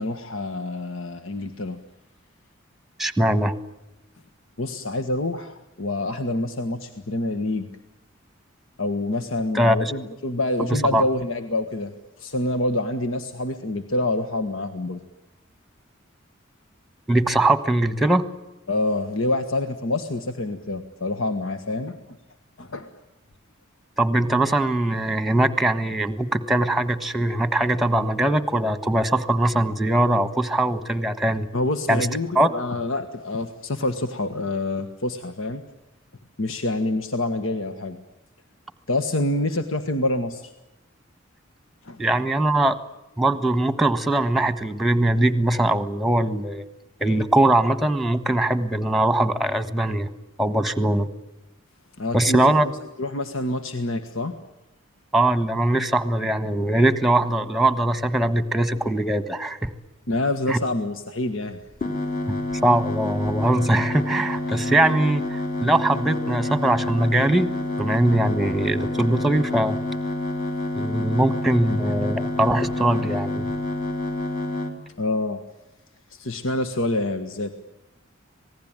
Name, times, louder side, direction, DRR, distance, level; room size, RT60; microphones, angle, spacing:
voice 1, 0.0-1.8 4.6-7.7 8.8-11.9 12.2-15.0 18.7-22.0 22.6-22.9 31.5-35.6 36.4-38.0 38.9-40.5 41.8-42.0 52.0-52.7 53.0-54.3 60.1-61.6 75.0-75.4 76.1-77.5, left 2 dB, 75° left, 8 dB, 1.5 m, -26 dB
voice 2, 3.0-3.5 9.5-9.9 10.6-11.0 17.1-18.3 24.0-31.5 31.9-32.1 32.3-32.5 42.0-42.7 43.2-46.6 47.0-50.1 50.4-51.1 52.1-52.7 55.1-59.7 60.5-60.6 62.6-67.5 67.8-69.8 70.7-73.5, right 1 dB, ahead, 12 dB, 1.4 m, -21 dB
sound 1, 61.8-74.7, left 1 dB, 40° left, 3.6 m, -28 dB
26.5 x 19.5 x 9.0 m, 0.98 s
head